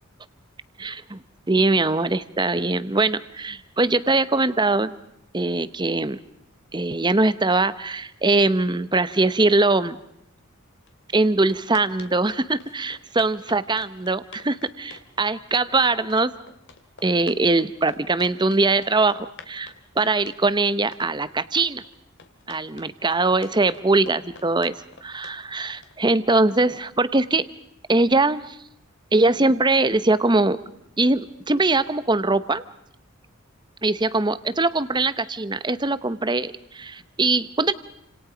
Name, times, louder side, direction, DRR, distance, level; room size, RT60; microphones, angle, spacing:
voice 1, 0.8-5.0 5.3-6.2 6.7-10.0 11.1-16.3 17.0-21.8 22.5-24.7 25.0-27.4 27.9-28.6 29.1-30.6 31.0-32.6 33.8-37.7, right 3 dB, 20° right, 14 dB, 0.9 m, -22 dB
sound 1, 10.9-11.0 11.2-26.8, left 4 dB, 55° left, 2.4 m, -46 dB
29.5 x 27.0 x 5.1 m, 0.76 s
head